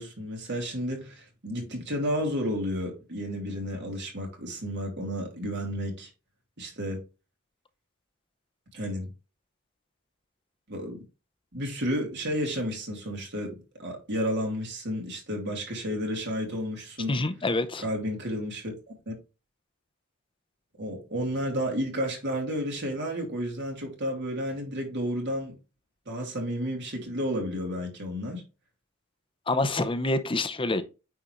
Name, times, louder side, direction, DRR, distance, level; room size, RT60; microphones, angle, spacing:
voice 1, 0.0-6.1 6.6-7.0 8.7-9.1 10.7-11.0 11.5-17.2 17.8-19.1 20.8-25.5 26.1-28.4, equal, 55° right, 2.8 m, -32 dB
voice 2, 17.1-17.8 29.5-30.8, left 2 dB, 25° left, 0.7 m, -26 dB
9.4 x 4.0 x 3.1 m
head